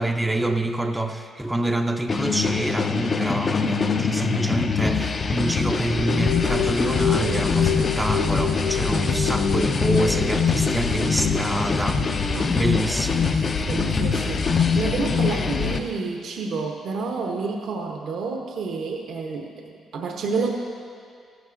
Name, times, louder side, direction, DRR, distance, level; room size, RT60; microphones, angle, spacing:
voice 1, 0.0-12.1 12.5-13.3, right 1 dB, 10° right, 5 dB, 0.5 m, -26 dB
sound 1, 2.1-15.8, left 5 dB, 40° left, 0.5 m, -24 dB
sound 2, 5.7-13.2, left 6 dB, 55° left, 1.2 m, -31 dB
sound 3, 6.3-15.8, left 5 dB, 75° left, 1.7 m, -31 dB
voice 2, 13.6-19.5 19.9-20.5, right 4 dB, 70° right, 2 dB, 0.8 m, -29 dB
14.5 x 11.5 x 2.6 m, 2.3 s
cardioid pair, 90°, 0 cm